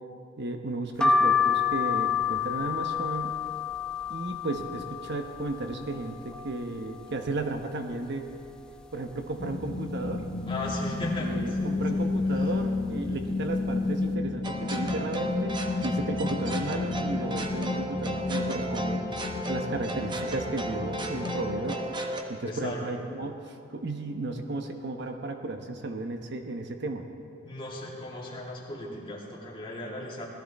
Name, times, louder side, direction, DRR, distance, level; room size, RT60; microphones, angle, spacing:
voice 1, 0.4-3.4 4.1-8.3 8.9-10.2 11.2-15.6 15.8-19.0 19.5-21.8 22.3-23.4 23.7-27.0, right 2 dB, 60° right, 5 dB, 1.0 m, -34 dB
sound 1, 1.0-6.7 7.1-7.9 8.3-8.4 8.6-9.7 10.2-10.6 11.3-11.6 12.4-12.7 12.9-13.1, left 6 dB, 5° left, 0.6 m, -29 dB
sound 2, 9.4-21.6, left 3 dB, 50° left, 1.1 m, -31 dB
voice 2, 10.5-12.0 12.3-12.5 22.4-23.0 27.4-30.3, left 1 dB, 25° left, -4 dB, 2.4 m, -37 dB
sound 3, 14.4-22.2, right 1 dB, 25° right, 1.0 m, -34 dB
18.0 x 13.0 x 4.2 m, 2.6 s
head